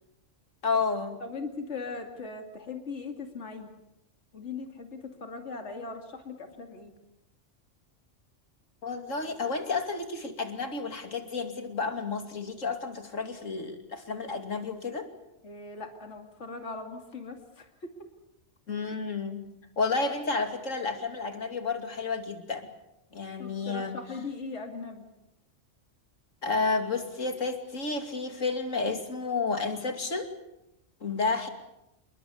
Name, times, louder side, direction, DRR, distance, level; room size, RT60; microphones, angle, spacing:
voice 1, 0.6-1.2 8.8-15.1 18.7-19.4 19.8-22.7 23.1-24.0 26.4-30.3 31.0-31.5, left 4 dB, 85° left, 6 dB, 3.0 m, -31 dB
voice 2, 1.2-3.7 4.3-6.9 15.4-17.9 23.4-25.1, left 4 dB, 65° left, 4 dB, 2.8 m, -39 dB
28.5 x 21.5 x 7.1 m, 0.91 s
omnidirectional pair, 1.3 m